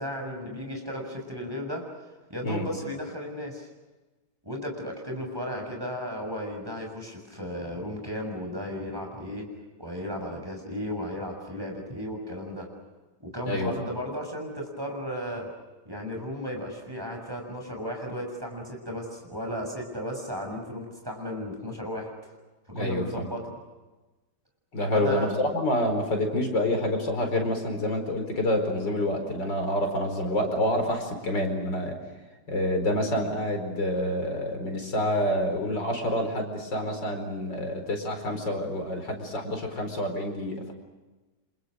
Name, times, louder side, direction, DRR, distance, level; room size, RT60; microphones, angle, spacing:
voice 1, 0.0-1.8 2.3-3.7 4.4-9.5 9.8-12.7 13.2-15.5 15.8-22.3 22.7-23.6 24.8-25.4, equal, 10° right, 1 dB, 6.7 m, -35 dB
voice 2, 22.7-23.0 24.7-32.0 32.5-40.7, left 1 dB, 80° left, 4 dB, 5.3 m, -27 dB
30.0 x 27.0 x 6.5 m, 1.2 s
omnidirectional pair, 1.9 m